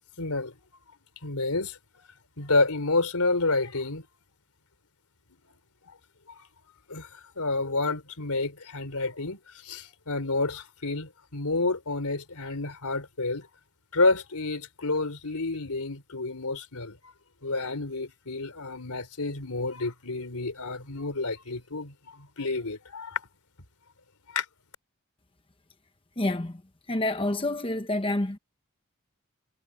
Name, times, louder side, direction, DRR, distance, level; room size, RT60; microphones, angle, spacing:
voice 1, 0.2-0.5 1.2-2.1 2.4-4.1 5.9-6.0 6.4-6.5 6.9-13.5 13.9-17.0 17.4-23.2 24.3-24.5, left 3 dB, 90° left, 3.9 m, -29 dB
voice 2, 26.2-26.6 26.9-28.4, left 1 dB, 25° left, 0.9 m, -28 dB
head